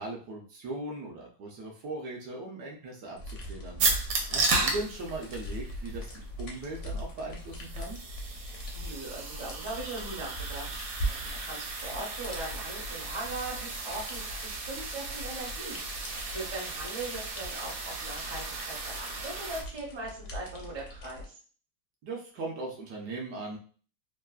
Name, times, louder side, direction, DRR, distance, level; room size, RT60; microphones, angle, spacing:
voice 1, 0.0-3.9 4.3-8.0 22.0-23.6, right 2 dB, 70° right, -1 dB, 1.0 m, -39 dB
sound 1, 3.2-21.3, equal, 75° left, 0.6 m, -41 dB
sound 2, 3.8-19.6, right 3 dB, 90° right, 1.4 m, -35 dB
voice 2, 4.3-4.7 8.7-21.4, right 2 dB, 35° right, -4 dB, 0.4 m, -40 dB
3.2 x 2.0 x 2.2 m, 0.42 s
omnidirectional pair, 2.0 m